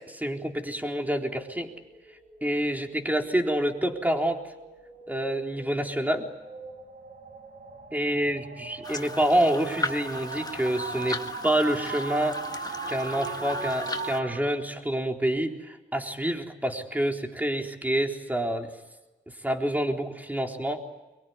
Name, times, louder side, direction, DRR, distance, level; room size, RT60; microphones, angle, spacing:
voice 1, 0.0-1.7 2.4-4.4 5.1-6.2 7.9-12.4 12.9-18.7 19.4-20.8, right 1 dB, 10° right, 3 dB, 3.9 m, -27 dB
sound 1, 1.5-14.4, right 4 dB, 60° right, 7.2 m, -40 dB
sound 2, 8.8-14.2, left 2 dB, 20° left, 1.8 m, -36 dB
24.0 x 23.0 x 9.6 m, 1.1 s
cardioid pair, 70°, 18 cm